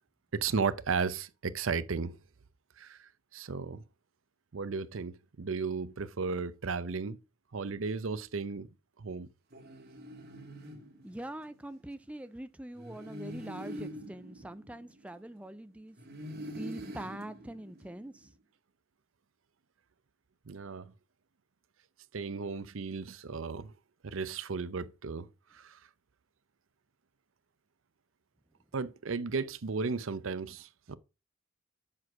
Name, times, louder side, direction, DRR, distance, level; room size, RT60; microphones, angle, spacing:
voice 1, 0.3-2.2 2.8-3.8 4.5-7.2 7.5-8.7 9.0-9.3 20.5-20.9 22.1-23.7 24.0-25.8 28.7-31.0, right 5 dB, 75° right, 0.7 m, -35 dB
sound 1, 9.5-11.6 12.8-15.5 16.0-18.2, equal, 50° right, 2.2 m, -45 dB
voice 2, 11.0-16.0 16.5-18.3, right 1 dB, 5° right, 0.4 m, -43 dB
7.5 x 6.2 x 6.0 m
head